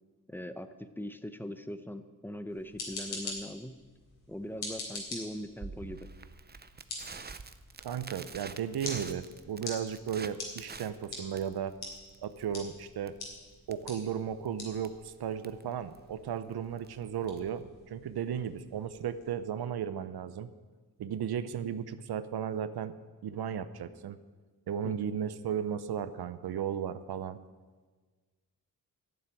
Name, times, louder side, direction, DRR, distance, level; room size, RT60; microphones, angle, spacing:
voice 1, 0.3-3.8 4.3-6.1 24.8-25.0, equal, 5° left, 10 dB, 0.8 m, -41 dB
sound 1, 2.5-19.3, left 3 dB, 85° left, 3.3 m, -46 dB
Crackle, 5.6-17.6, right 4 dB, 25° right, 0.7 m, -48 dB
voice 2, 7.8-11.8 12.2-13.2 13.7-20.5 21.0-22.9 23.2-24.2 24.7-27.4, right 8 dB, 85° right, 13 dB, 0.8 m, -35 dB
12.5 x 7.2 x 9.0 m, 1.4 s
cardioid pair, 75°, 37 cm